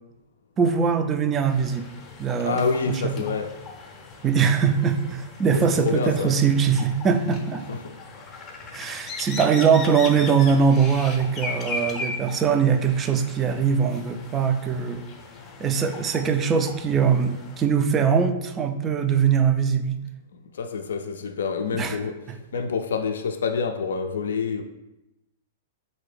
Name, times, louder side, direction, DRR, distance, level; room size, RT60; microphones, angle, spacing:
voice 1, 0.6-1.9 2.2-3.1 4.2-7.6 8.7-15.0 15.6-20.0 21.7-22.0, right 6 dB, 25° right, 7 dB, 0.3 m, -22 dB
sound 1, 1.5-17.7, left 3 dB, 30° left, 0.6 m, -38 dB
voice 2, 2.4-3.6 5.8-6.3 7.7-8.0 20.5-22.2 22.5-24.6, left 5 dB, 75° left, 6 dB, 0.3 m, -27 dB
3.9 x 2.7 x 3.2 m, 0.95 s
hypercardioid pair, 110°, 0 cm